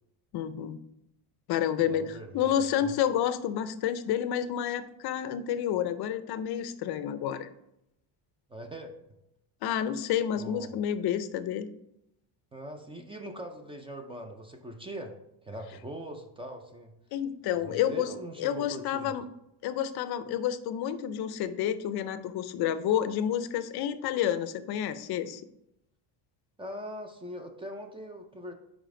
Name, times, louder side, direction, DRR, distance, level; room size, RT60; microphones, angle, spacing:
voice 1, 0.3-0.8 1.5-7.5 9.6-11.7 17.1-18.1 18.4-19.3 19.6-25.4, left 10 dB, 55° left, 12 dB, 0.5 m, -29 dB
voice 2, 1.9-2.5 2.8-2.9 8.5-9.1 10.3-10.7 12.5-15.1 15.4-16.9 17.5-19.1 26.6-28.5, right 1 dB, 10° right, 4 dB, 0.3 m, -41 dB
5.0 x 5.0 x 3.7 m, 0.81 s
cardioid pair, 145°, 48 cm